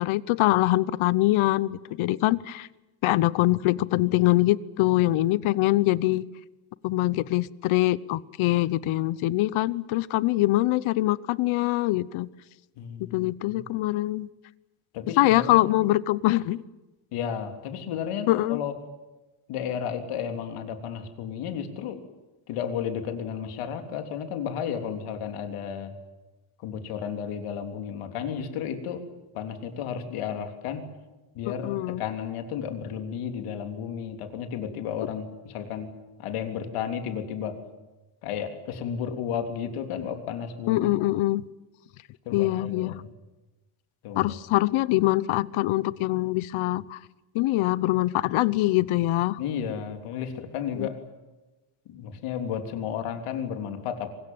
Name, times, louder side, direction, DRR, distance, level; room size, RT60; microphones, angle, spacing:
voice 1, 0.0-2.7 3.0-6.3 6.8-12.3 13.1-14.3 15.2-16.6 18.3-18.6 31.4-32.0 40.7-41.4 42.3-43.0 44.2-47.0 47.3-49.4 50.8-50.9, left 17 dB, 70° left, 19 dB, 1.0 m, -23 dB
voice 2, 12.8-13.6 14.9-15.6 17.1-18.7 19.5-22.0 22.5-25.9 26.6-29.0 29.3-30.9 31.3-35.9 36.2-37.6 38.2-41.0 42.2-43.1 44.0-44.3 49.4-51.0 51.9-54.1, left 8 dB, 90° left, 6 dB, 3.5 m, -33 dB
24.0 x 21.0 x 9.5 m, 1.1 s
cardioid pair, 175°, 50 cm